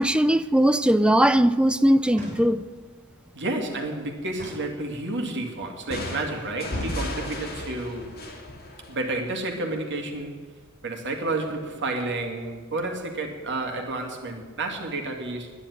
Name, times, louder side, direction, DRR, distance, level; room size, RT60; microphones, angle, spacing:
voice 1, 0.0-2.6, equal, 5° right, 0.4 m, -19 dB
sound 1, 2.1-2.9 4.3-5.3 6.7-7.5, equal, 35° right, 5.1 m, -42 dB
voice 2, 3.3-8.2 8.9-10.4 10.8-15.5, right 2 dB, 55° right, 2.3 m, -30 dB
sound 2, 5.9-9.6, left 1 dB, 45° left, 2.6 m, -34 dB
10.5 x 10.0 x 9.8 m
head